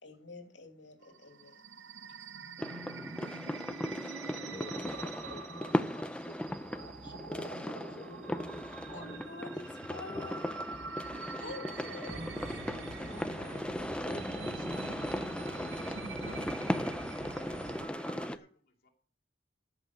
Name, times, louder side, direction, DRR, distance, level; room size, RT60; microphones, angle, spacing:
voice 1, 0.0-1.6 2.0-2.3 3.7-3.8 8.9-10.6 11.4-12.3, left 3 dB, 80° left, 2.7 m, -47 dB
sound 1, 1.0-18.3, right 4 dB, 85° right, 0.9 m, -46 dB
sound 2, 2.6-18.4, left 1 dB, 5° left, 0.5 m, -37 dB
voice 2, 4.5-9.3 10.1-10.3 12.1-14.7 15.0-16.6, left 1 dB, 25° left, 1.7 m, -48 dB
sound 3, 12.1-17.9, right 2 dB, 40° right, 0.9 m, -45 dB
voice 3, 17.2-17.5 18.2-18.9, left 3 dB, 55° left, 2.5 m, -61 dB
14.0 x 6.0 x 6.6 m
head